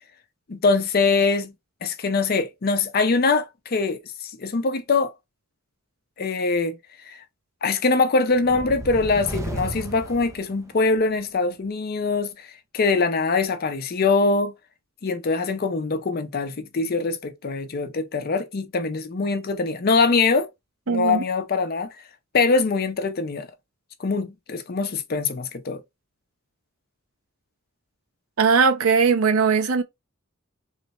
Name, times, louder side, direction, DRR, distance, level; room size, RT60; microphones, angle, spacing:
voice 1, 0.5-1.5 1.8-5.1 6.2-6.8 7.1-7.2 7.6-12.5 12.7-14.5 15.0-20.5 20.9-21.9 22.3-23.5 24.0-25.8, left 4 dB, 45° left, 0.5 m, -23 dB
sound 1, 8.3-11.1, right 1 dB, 15° right, 0.3 m, -33 dB
voice 2, 20.9-21.2 28.4-29.8, right 5 dB, 80° right, 0.6 m, -19 dB
3.2 x 2.1 x 4.1 m
head